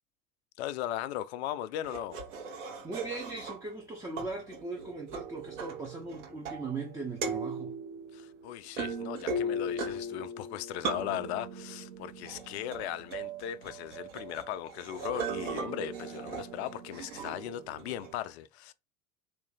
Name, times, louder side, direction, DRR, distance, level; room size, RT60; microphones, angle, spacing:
voice 1, 0.6-2.2 8.1-18.7, left 12 dB, 55° left, 0.4 m, -38 dB
sound 1, 1.8-3.8 4.2-6.9 7.2-18.1, right 2 dB, 60° right, 1.0 m, -38 dB
voice 2, 2.8-7.8, right 3 dB, 10° right, 0.5 m, -39 dB
3.1 x 2.6 x 3.6 m
figure-of-eight pair, 75°, 42 cm